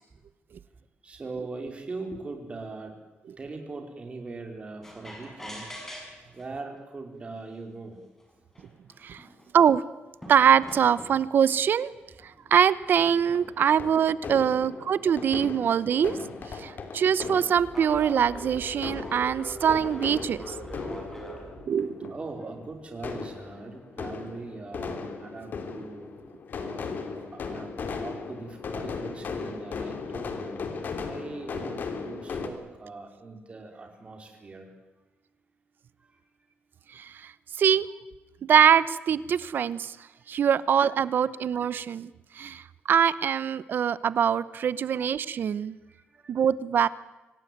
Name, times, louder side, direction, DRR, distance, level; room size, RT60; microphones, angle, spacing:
voice 1, 1.0-3.0 3.4-5.7 6.3-8.0 16.6-16.9 20.8-21.2 22.1-26.2 26.5-34.7 36.0-36.2 40.0-40.4 43.7-43.9 44.5-44.7 45.9-46.4, right 3 dB, 30° right, 4 dB, 4.7 m, -41 dB
sound 1, 4.8-6.4 7.4-7.5 8.2-8.3 8.5-9.4 10.2-11.3 12.2-13.7 16.4-16.5 17.6-21.5, equal, 10° left, 5.9 m, -41 dB
voice 2, 10.3-11.9 12.2-16.2 16.5-20.5 21.7-22.1 36.9-37.3 37.6-37.9 38.5-40.0 40.3-45.8 46.3-46.9, right 8 dB, 55° right, 18 dB, 0.8 m, -23 dB
sound 2, 12.9-32.5, left 5 dB, 50° left, 3.1 m, -38 dB
25.5 x 18.0 x 9.4 m, 1.1 s
cardioid pair, 135°, 4 cm